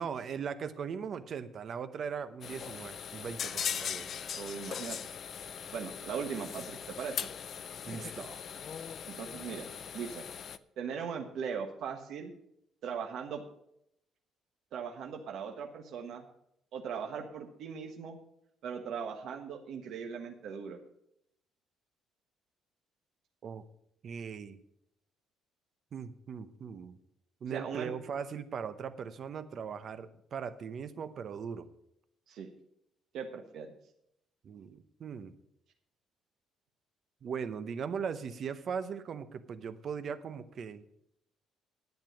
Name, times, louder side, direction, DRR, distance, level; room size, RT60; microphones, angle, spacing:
voice 1, 0.0-4.1 7.9-8.5 23.4-23.6 24.0-24.6 25.9-27.0 27.4-31.7 34.4-35.3 37.2-40.8, right 6 dB, 40° right, 12 dB, 0.8 m, -39 dB
Disk Saw Cuts Alluminium in Workshop, 2.4-10.6, left 7 dB, 40° left, 0.4 m, -40 dB
voice 2, 4.3-5.0 5.7-7.3 9.1-9.7 9.9-10.3 10.8-12.3 12.8-13.4 14.7-16.2 16.7-18.2 18.6-20.8 27.5-27.9 32.3-32.5 33.1-33.7, right 6 dB, 60° right, 2 dB, 1.3 m, -39 dB
10.5 x 8.9 x 6.3 m, 0.76 s
cardioid pair, 175°, 0 cm